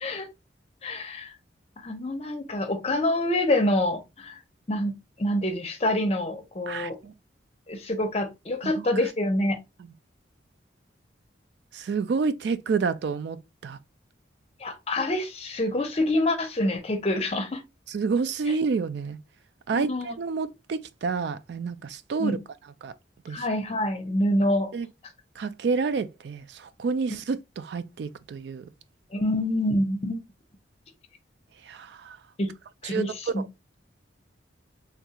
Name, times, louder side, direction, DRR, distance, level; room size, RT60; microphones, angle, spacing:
voice 1, 0.8-1.3 1.8-4.4 4.7-7.0 7.7-9.6 14.6-17.6 19.7-20.1 22.2-22.4 23.3-24.7 29.1-30.2 32.4-32.5 32.8-33.4, left 1 dB, 35° left, 0.7 m, -26 dB
voice 2, 6.7-7.1 8.6-8.9 9.8-9.9 11.7-13.4 13.6-13.8 17.9-19.2 19.7-22.4 22.8-22.9 23.2-23.5 24.7-24.9 25.4-28.7 31.6-32.2 32.8-33.0 33.4-33.5, right 4 dB, 65° right, 0.3 m, -29 dB
3.4 x 2.3 x 2.8 m
head